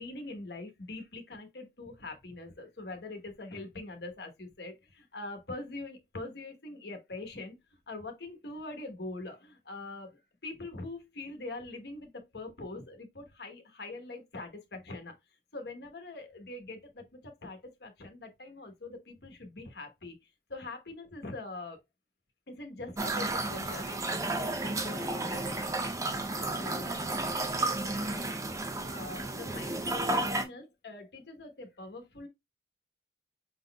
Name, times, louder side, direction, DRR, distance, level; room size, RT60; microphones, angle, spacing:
voice 1, 0.0-15.1 15.5-21.8 22.5-25.7 26.3-28.6 28.9-32.3, left 2 dB, 70° left, 1.0 m, -43 dB
sound 1, 23.0-30.4, right 2 dB, 20° right, 0.5 m, -32 dB
5.2 x 3.9 x 2.2 m
head